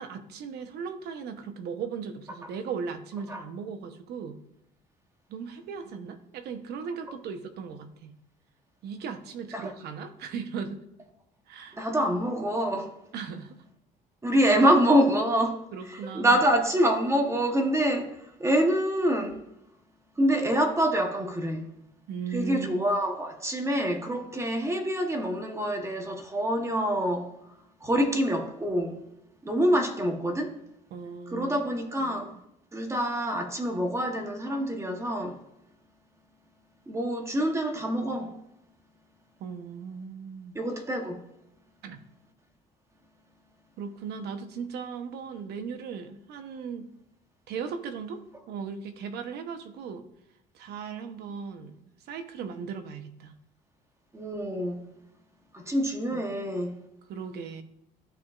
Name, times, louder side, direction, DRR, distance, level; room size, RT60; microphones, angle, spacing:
voice 1, 0.0-4.4 5.3-8.1 8.8-10.8 11.5-11.8 13.1-13.6 15.7-16.4 22.1-22.9 30.9-31.6 32.0-32.2 39.4-40.6 41.8-42.0 43.8-46.9 47.5-48.2 48.5-50.1 50.5-53.3 56.1-56.3 57.1-57.6, right 6 dB, 75° right, 0.9 m, -37 dB
voice 2, 11.7-13.0 14.2-15.6 15.9-19.5 20.2-21.7 22.3-27.3 27.8-29.0 29.4-30.5 31.3-32.3 32.7-35.4 36.9-38.3 40.5-41.2 54.1-54.8 55.5-56.8, equal, 15° right, 1.0 m, -26 dB
13.0 x 4.5 x 2.4 m
cardioid pair, 110°, 17 cm